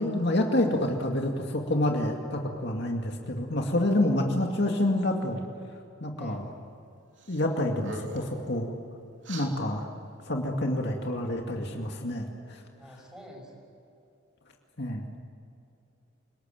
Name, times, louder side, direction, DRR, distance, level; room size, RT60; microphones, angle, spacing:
voice 1, 0.0-5.4 6.0-6.5 7.3-8.7 9.3-9.9 10.3-12.6 14.8-15.0, left 1 dB, 55° left, 1 dB, 2.3 m, -28 dB
sound 1, 7.2-7.4 7.7-8.4 9.2-9.5, right 3 dB, 65° right, 3.5 m, -42 dB
voice 2, 12.7-13.7, equal, 5° right, 1 dB, 6.1 m, -47 dB
29.5 x 20.0 x 9.1 m, 2.6 s
head